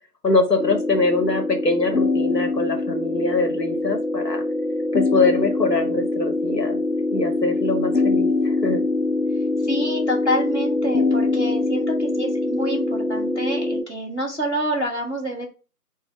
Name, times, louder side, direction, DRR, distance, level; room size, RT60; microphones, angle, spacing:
voice 1, 0.2-4.4 4.9-6.8 7.1-8.8, left 3 dB, 85° left, 5 dB, 1.0 m, -23 dB
sound 1, 0.6-13.8, left 2 dB, 65° left, 0.8 m, -23 dB
voice 2, 9.6-15.5, equal, 45° left, -3 dB, 1.1 m, -27 dB
4.8 x 2.0 x 3.0 m, 0.34 s
figure-of-eight pair, 175°, 48 cm